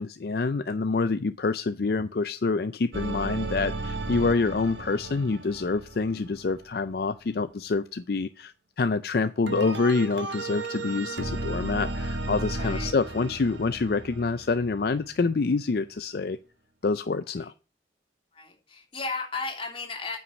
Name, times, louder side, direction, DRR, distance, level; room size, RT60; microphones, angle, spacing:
voice 1, 0.0-16.4 16.8-17.5, left 4 dB, 60° left, 12 dB, 0.4 m, -27 dB
sound 1, 2.9-7.0 9.5-15.1, right 2 dB, 85° right, 1.4 m, -34 dB
voice 2, 12.6-13.3 18.3-20.2, left 3 dB, 30° left, 1 dB, 3.1 m, -35 dB
9.4 x 5.9 x 7.2 m, 0.34 s
head